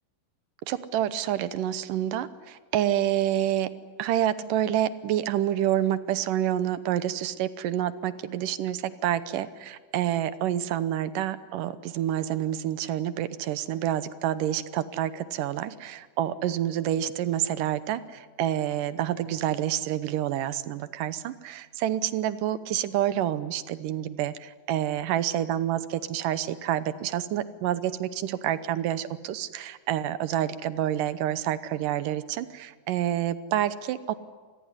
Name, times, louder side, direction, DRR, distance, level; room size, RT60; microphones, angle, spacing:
voice 1, 0.7-3.7 4.0-34.1, right 11 dB, 70° right, 14 dB, 2.3 m, -28 dB
26.5 x 20.5 x 9.8 m, 1.5 s
omnidirectional pair, 4.2 m